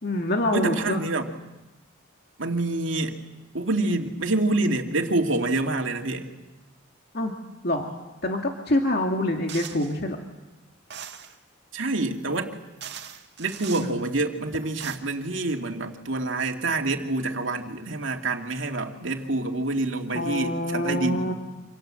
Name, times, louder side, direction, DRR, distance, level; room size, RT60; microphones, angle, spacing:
voice 1, 0.0-1.0 7.1-7.4 7.6-8.0 8.2-10.2 13.8-14.0 20.1-21.3, left 1 dB, 50° left, 2 dB, 2.2 m, -26 dB
voice 2, 0.5-1.2 2.4-3.2 3.5-6.3 11.7-12.6 13.4-21.3, right 2 dB, 70° right, 2 dB, 2.5 m, -27 dB
sound 1, 9.5-10.0 10.9-11.4 12.3-12.4 12.8-13.9 14.6-15.0, right 9 dB, 55° right, 2.0 m, -39 dB
28.0 x 27.0 x 7.7 m, 1.1 s
head